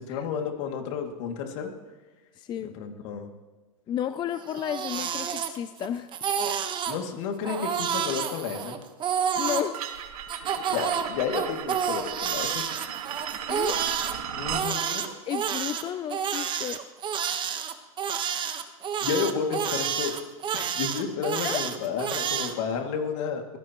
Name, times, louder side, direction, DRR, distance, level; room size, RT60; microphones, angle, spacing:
voice 1, 0.0-1.7 2.6-3.3 6.9-8.8 10.7-12.6 14.3-15.1 19.0-20.1 20.5-23.6, left 6 dB, 55° left, 3 dB, 2.5 m, -31 dB
voice 2, 2.4-2.7 3.9-6.1 9.4-9.8 13.5-13.8 15.3-16.8 21.4-21.6, left 10 dB, 25° left, 11 dB, 0.5 m, -32 dB
Crying sobbing, 4.4-5.9 6.1-7.0 7.4-9.7 10.3-14.1 14.5-22.5, right 8 dB, 25° right, 1.3 m, -29 dB
sound 1, 9.7-14.7, right 9 dB, 80° right, 2.1 m, -36 dB
24.0 x 17.5 x 3.1 m, 1.2 s
supercardioid pair, 130°, 18 cm